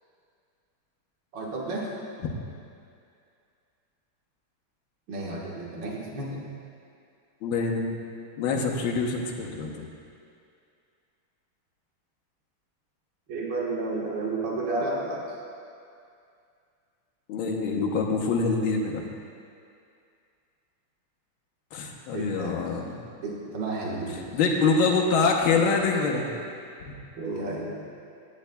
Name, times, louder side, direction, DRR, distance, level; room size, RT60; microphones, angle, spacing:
voice 1, 1.3-1.9 5.1-6.4 13.3-15.3 22.1-22.6 23.2-24.2 27.2-27.7, right 2 dB, 65° right, -4 dB, 2.1 m, -31 dB
voice 2, 7.4-8.0 8.4-9.9 17.3-19.0 21.7-23.0 24.1-26.3 26.8-26.9, left 4 dB, 75° left, 1 dB, 1.6 m, -25 dB
17.0 x 9.1 x 2.2 m, 2.4 s
omnidirectional pair, 2.3 m